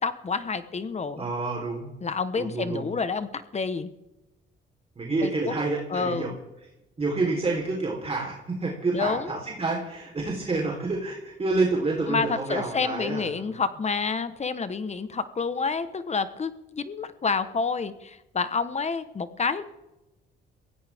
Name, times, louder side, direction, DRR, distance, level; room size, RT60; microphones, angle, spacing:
voice 1, 0.0-1.3 2.0-3.9 5.2-5.5 5.9-6.4 8.9-9.4 12.1-19.6, left 5 dB, 35° left, 12 dB, 1.2 m, -29 dB
voice 2, 1.2-1.9 2.4-2.8 5.0-6.3 7.0-13.5, right 3 dB, 30° right, -2 dB, 3.9 m, -28 dB
22.5 x 16.5 x 3.6 m, 0.96 s
cardioid pair, 90°, 20 cm